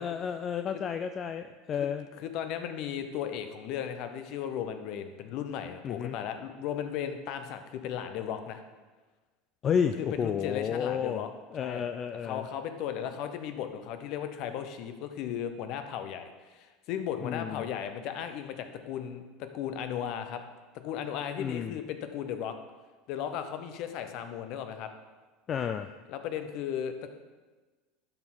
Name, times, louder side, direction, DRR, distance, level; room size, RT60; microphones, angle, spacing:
voice 1, 0.0-2.1 5.8-6.2 9.6-11.3 11.5-12.5 17.2-17.7 21.4-21.7 25.5-25.9, left 7 dB, 40° left, 8 dB, 0.3 m, -31 dB
voice 2, 2.2-8.6 10.0-11.3 11.6-11.9 12.2-20.4 20.7-22.5 23.1-24.9 26.1-27.1, left 9 dB, 55° left, 8 dB, 0.7 m, -36 dB
12.0 x 4.3 x 3.8 m, 1.3 s
hypercardioid pair, 75°, 0 cm